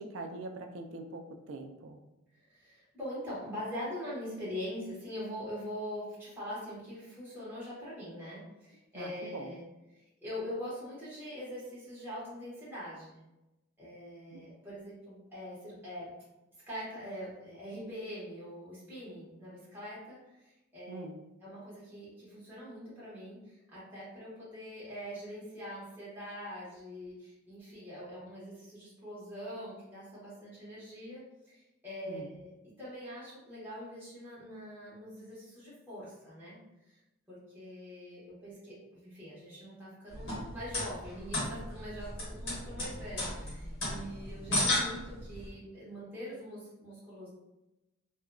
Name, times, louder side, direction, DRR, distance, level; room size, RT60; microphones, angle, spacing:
voice 1, 0.0-2.0 8.9-9.5 14.3-14.4 20.9-21.2 32.1-32.3, right 2 dB, 65° right, 5 dB, 0.3 m, -43 dB
voice 2, 2.3-9.7 10.2-13.2 13.8-16.1 16.7-21.0 21.4-36.6 36.8-37.0 37.3-47.3, equal, 10° right, -9 dB, 1.2 m, -43 dB
sound 1, 40.1-45.5, left 1 dB, 55° left, 1.1 m, -34 dB
2.8 x 2.4 x 2.2 m, 0.97 s
head